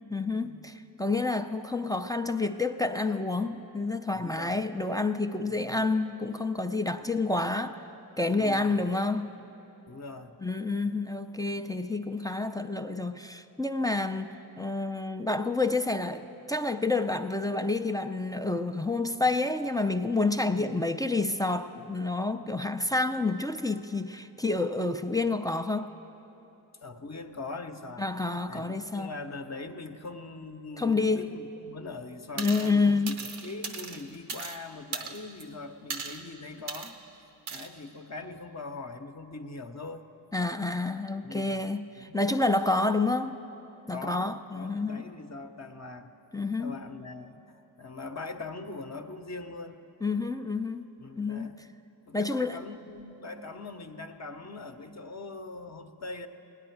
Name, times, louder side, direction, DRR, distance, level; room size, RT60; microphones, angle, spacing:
voice 1, 0.1-7.8 8.2-9.3 10.4-25.9 28.0-29.1 30.8-31.3 32.4-33.1 40.3-43.4 43.9-45.0 46.3-46.8 50.0-51.5 52.1-52.6, left 3 dB, 10° left, 0.4 m, -29 dB
voice 2, 4.1-4.6 5.5-5.9 8.4-8.8 9.9-10.4 20.5-20.8 26.8-28.0 28.4-33.1 33.4-37.0 37.5-40.0 41.2-41.7 42.0-42.2 43.9-46.1 46.6-47.4 47.8-49.8 51.0-51.7 52.0-56.3, left 3 dB, 35° left, 0.8 m, -42 dB
sound 1, 32.4-32.7 33.1-34.6 34.9-35.4 35.9-36.2 36.7-36.9 37.5-37.7, right 5 dB, 85° right, 0.9 m, -37 dB
18.0 x 9.9 x 4.6 m
supercardioid pair, 40°, 46 cm